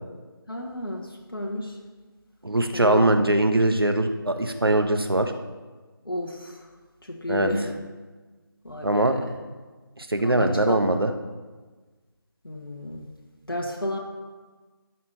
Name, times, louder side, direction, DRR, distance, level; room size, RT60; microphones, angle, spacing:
voice 1, 0.5-1.8 2.7-3.3 6.1-6.6 7.1-7.7 8.6-9.3 10.2-11.0 12.4-13.1 13.5-14.0, left 1 dB, 65° left, -1 dB, 1.8 m, -32 dB
voice 2, 2.4-5.3 7.3-7.5 8.8-9.3 10.0-11.1, right 1 dB, 75° right, 6 dB, 1.2 m, -22 dB
13.0 x 4.4 x 8.4 m, 1.3 s
figure-of-eight pair, 165°, 13 cm